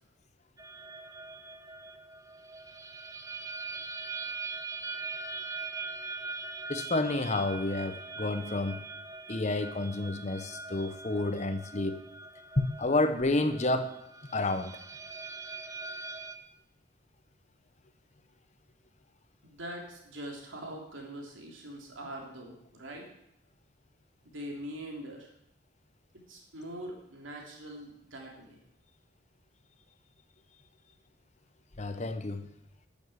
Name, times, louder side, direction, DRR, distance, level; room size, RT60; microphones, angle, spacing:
sound 1, 0.6-16.4, right 4 dB, 15° right, 0.7 m, -42 dB
voice 1, 6.7-8.9 9.3-12.0 12.6-13.9 14.3-14.8 31.8-32.5, left 2 dB, 35° left, 10 dB, 0.9 m, -30 dB
voice 2, 19.4-23.1 24.2-25.3 26.1-28.6, right 1 dB, 75° right, 1 dB, 3.4 m, -43 dB
12.0 x 7.2 x 8.1 m, 0.79 s
head